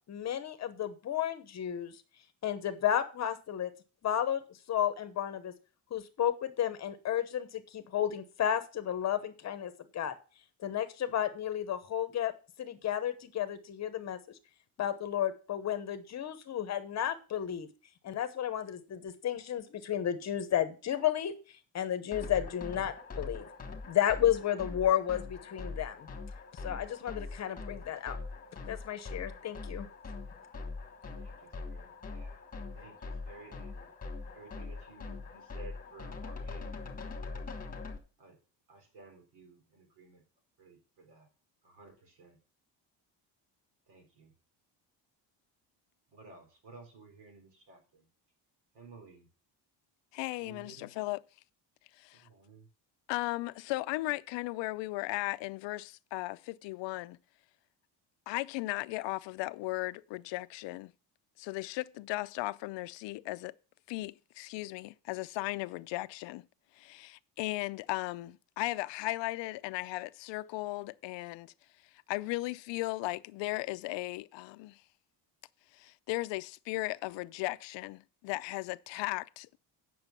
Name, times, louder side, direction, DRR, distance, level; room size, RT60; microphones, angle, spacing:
voice 1, 0.1-2.0 2.4-3.7 4.0-4.4 4.7-5.5 5.9-10.1 10.6-12.3 12.6-14.4 14.8-17.7 18.0-23.5 23.9-26.1 26.6-28.2 28.7-29.9, left 10 dB, 40° left, 1.0 m, -32 dB
sound 1, 22.1-38.0, left 3 dB, 20° left, 1.4 m, -43 dB
voice 2, 31.1-32.4 32.7-33.9 34.3-37.4 38.2-38.4 38.7-40.2 40.6-41.3 41.6-42.4 43.9-44.3 46.1-48.0 48.7-49.3 50.4-50.9 52.1-52.7, right 3 dB, 70° right, 4.3 m, -55 dB
voice 3, 50.1-51.2 52.0-52.3 53.1-57.2 58.3-60.9 61.4-63.5 63.9-66.4 66.8-71.5 72.1-74.8 75.7-79.6, left 20 dB, 75° left, 0.6 m, -36 dB
9.0 x 6.2 x 5.9 m
cardioid pair, 160°, 44 cm